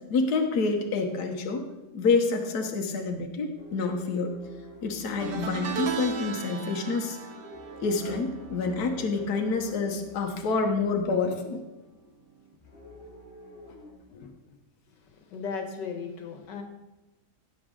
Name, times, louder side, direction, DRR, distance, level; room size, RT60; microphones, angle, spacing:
voice 1, 0.1-1.6 1.9-4.3 4.8-7.2 7.8-11.6 14.1-14.3, left 4 dB, 65° left, 2 dB, 1.5 m, -27 dB
sound 1, 3.6-6.2 7.3-11.1 12.6-13.9, left 2 dB, 30° left, 2.1 m, -47 dB
sound 2, 5.2-10.6 10.8-11.2 12.5-12.6, right 6 dB, 60° right, 0.6 m, -37 dB
voice 2, 15.0-16.6, left 5 dB, 85° left, 4 dB, 1.9 m, -36 dB
16.5 x 7.1 x 3.8 m, 1.0 s
omnidirectional pair, 1.8 m